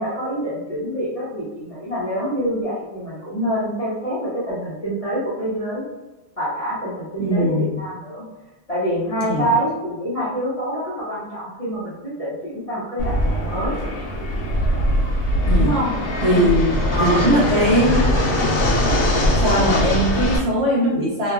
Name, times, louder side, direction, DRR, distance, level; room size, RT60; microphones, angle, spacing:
voice 1, 0.0-5.8 6.4-8.2 8.7-13.8 15.5-15.9 16.3-16.5 16.9-17.3, equal, 40° left, -11 dB, 0.5 m, -26 dB
voice 2, 7.2-7.8 9.2-9.5 15.5-15.8 16.2-18.0 19.3-21.3, equal, 60° right, -5 dB, 0.7 m, -20 dB
Fixed-wing aircraft airplane, 13.0-20.4, equal, 80° left, 1.0 m, -21 dB
2.9 x 2.2 x 2.3 m, 1.1 s
omnidirectional pair, 1.4 m